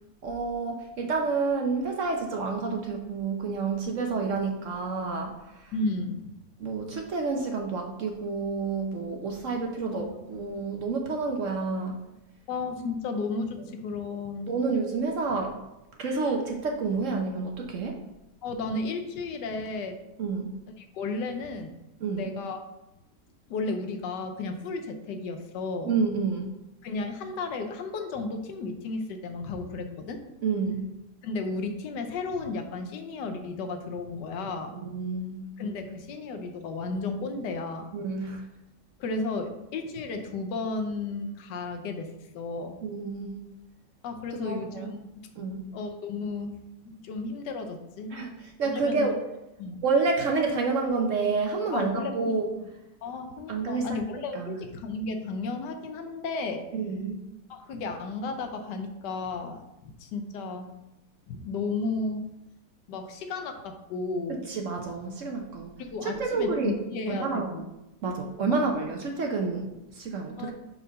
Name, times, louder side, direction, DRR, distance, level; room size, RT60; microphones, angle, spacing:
voice 1, 0.2-5.7 6.6-12.0 14.5-15.6 16.0-18.0 20.2-20.5 22.0-22.3 25.9-26.5 30.4-30.8 34.7-35.5 37.9-38.4 42.8-43.4 44.3-44.9 45.4-45.6 48.1-49.2 49.8-52.5 53.5-53.9 54.3-54.6 56.7-57.2 64.5-65.7 66.0-66.8 67.1-67.5 68.0-70.5, right 4 dB, 60° right, 2 dB, 0.9 m, -29 dB
voice 2, 5.7-6.3 9.9-10.1 12.5-14.5 18.4-20.0 20.9-21.7 22.1-22.6 23.5-25.9 26.8-30.2 31.2-34.7 35.6-38.0 39.0-42.8 44.0-44.9 45.1-45.3 45.7-46.6 46.8-48.1 48.6-49.1 49.6-49.8 51.7-52.4 53.0-56.6 57.5-60.7 61.3-62.3 62.9-64.4 65.8-67.6 68.5-68.6 70.4-70.5, left 3 dB, 80° left, 6 dB, 1.4 m, -33 dB
4.7 x 4.4 x 5.3 m, 0.93 s
omnidirectional pair, 1.8 m